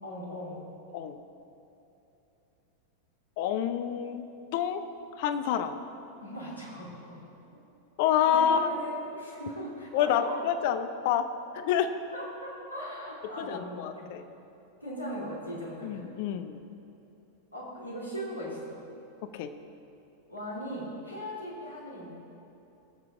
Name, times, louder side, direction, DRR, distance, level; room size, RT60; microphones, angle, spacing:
voice 1, 0.0-0.6 6.2-7.2 8.2-10.3 12.1-14.1 14.8-16.0 17.5-18.8 20.3-22.1, equal, 85° left, -6 dB, 3.1 m, -38 dB
voice 2, 3.4-4.2 4.5-4.8 5.2-5.8 8.0-8.7 9.9-11.3 11.5-11.9 13.4-14.2 15.8-16.7 19.3-19.5, left 9 dB, 50° left, 10 dB, 0.7 m, -28 dB
19.0 x 7.7 x 3.8 m, 2.9 s
figure-of-eight pair, 90°, 0 cm